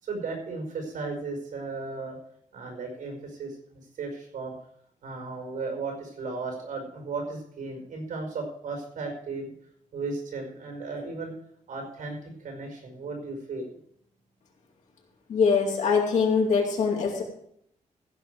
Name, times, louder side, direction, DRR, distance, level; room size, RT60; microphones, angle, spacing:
voice 1, 0.0-2.2 2.5-4.5 5.0-9.5 9.9-11.3 11.7-13.8, right 3 dB, 90° right, 2 dB, 5.1 m, -35 dB
voice 2, 15.3-17.2, left 5 dB, 70° left, -1 dB, 3.6 m, -23 dB
15.5 x 5.5 x 7.8 m, 0.69 s
wide cardioid pair, 155°, 13 cm